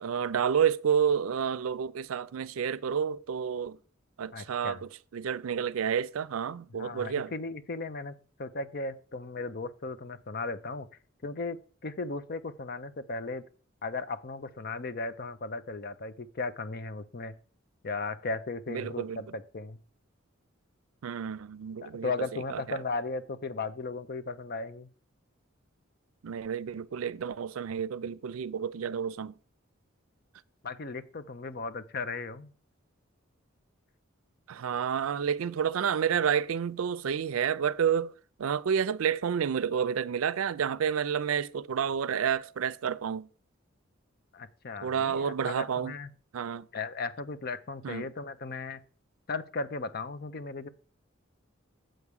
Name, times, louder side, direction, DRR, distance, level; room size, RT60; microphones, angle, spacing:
voice 1, 0.0-3.8 4.2-7.3 18.7-19.2 21.0-22.8 26.2-29.3 34.5-38.1 38.4-43.3 44.8-45.9 46.3-46.7 47.8-48.1, right 7 dB, 90° right, 0.4 m, -30 dB
voice 2, 4.3-4.8 6.8-10.9 11.2-13.4 13.8-17.3 17.8-19.8 21.8-24.9 30.6-32.5 44.3-46.1 46.7-48.8 49.3-50.7, left 3 dB, 50° left, 0.7 m, -36 dB
7.8 x 4.8 x 6.9 m
head